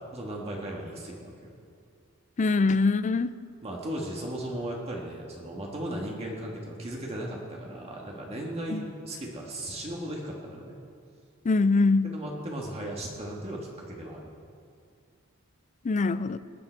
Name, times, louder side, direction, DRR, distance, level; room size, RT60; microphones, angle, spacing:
voice 1, 0.1-1.5 3.6-10.8 12.0-14.3, right 1 dB, 30° right, -2 dB, 1.5 m, -36 dB
voice 2, 2.4-3.3 8.7-8.9 11.4-12.1 15.8-16.4, left 3 dB, 35° left, 14 dB, 0.4 m, -23 dB
19.5 x 8.8 x 4.5 m, 2.3 s
head